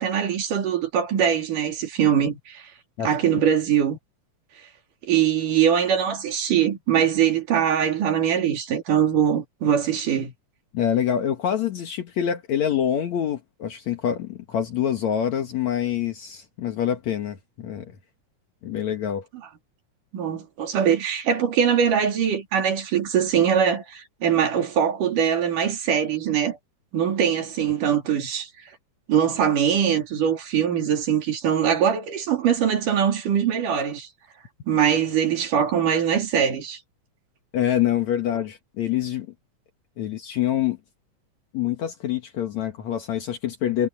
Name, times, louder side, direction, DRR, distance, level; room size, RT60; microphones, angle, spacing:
voice 1, 0.0-2.7 3.0-4.0 5.0-10.3 20.1-26.6 26.9-28.5 29.1-34.1 34.7-36.8, right 8 dB, 85° right, 4.4 m, -22 dB
voice 2, 10.7-17.9 18.6-19.3 37.5-39.3 40.0-40.8 41.5-43.9, left 10 dB, 65° left, 2.7 m, -26 dB
omnidirectional pair, 3.6 m